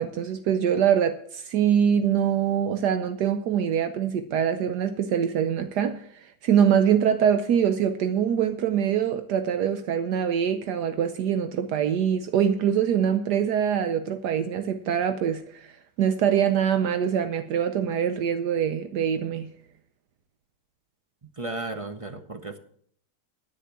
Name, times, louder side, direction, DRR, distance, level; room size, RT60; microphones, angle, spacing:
voice 1, 0.0-15.7 16.0-19.5, right 8 dB, 75° right, 1.3 m, -24 dB
voice 2, 21.2-22.6, right 2 dB, 25° right, 0.8 m, -35 dB
10.0 x 9.2 x 7.5 m
omnidirectional pair, 1.8 m